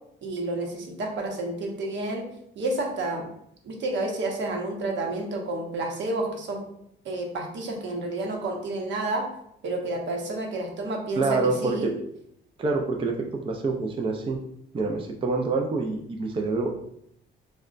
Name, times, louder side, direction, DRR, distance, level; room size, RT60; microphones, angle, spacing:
voice 1, 0.2-2.3 2.6-3.3 3.6-6.6 7.0-9.3 9.6-11.9, right 2 dB, 65° right, 2 dB, 0.8 m, -30 dB
voice 2, 11.2-12.0 12.6-13.1 13.4-14.4 14.7-16.7, right 3 dB, 25° right, 2 dB, 0.4 m, -26 dB
4.8 x 2.2 x 2.4 m, 0.72 s
cardioid pair, 90°, 20 cm